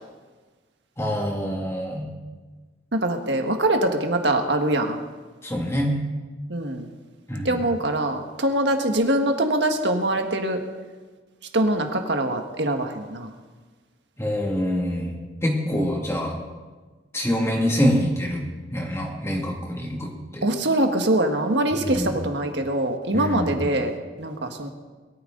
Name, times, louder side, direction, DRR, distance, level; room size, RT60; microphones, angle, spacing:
voice 1, 1.0-2.1 5.4-6.0 7.3-7.6 14.2-15.1 15.4-16.4 17.1-18.4 18.7-20.4 21.9-22.1 23.1-23.5, equal, 15° left, -1 dB, 2.4 m, -25 dB
voice 2, 2.9-5.0 6.5-6.9 7.4-10.6 11.5-13.3 15.7-15.9 20.4-23.9 24.2-24.7, right 1 dB, 65° right, 5 dB, 1.6 m, -23 dB
21.5 x 13.5 x 3.9 m, 1.3 s
head